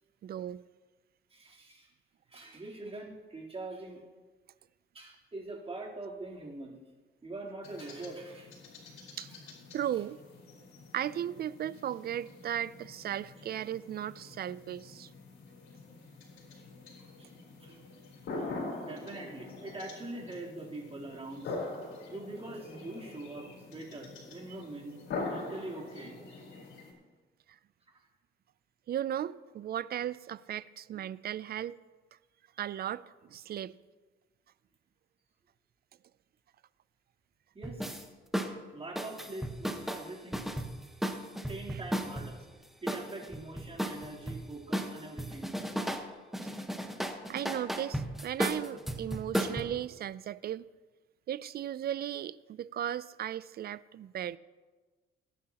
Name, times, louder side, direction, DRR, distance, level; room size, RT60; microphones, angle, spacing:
voice 1, 0.2-0.6 9.2-9.3 9.7-10.2 10.9-15.1 28.9-31.8 32.6-33.7 41.7-41.8 47.3-50.7 51.3-54.4, right 10 dB, 50° right, 0.4 m, -36 dB
voice 2, 1.3-1.9 2.3-4.0 4.9-6.8 7.2-8.5 9.9-10.0 17.0-17.3 17.6-17.8 18.4-18.5 18.8-21.6 22.1-26.2 37.5-38.0 38.7-40.4 41.5-42.4 42.8-45.6, right 2 dB, 30° right, 3.5 m, -43 dB
sound 1, 7.6-26.9, left 3 dB, 80° left, 4.2 m, -44 dB
sound 2, 37.6-38.0 38.3-38.5 39.0-42.4 42.9-44.4 44.7-46.1 46.3-49.6, equal, ahead, 1.2 m, -34 dB
21.0 x 10.0 x 2.9 m
cardioid pair, 90°, 20 cm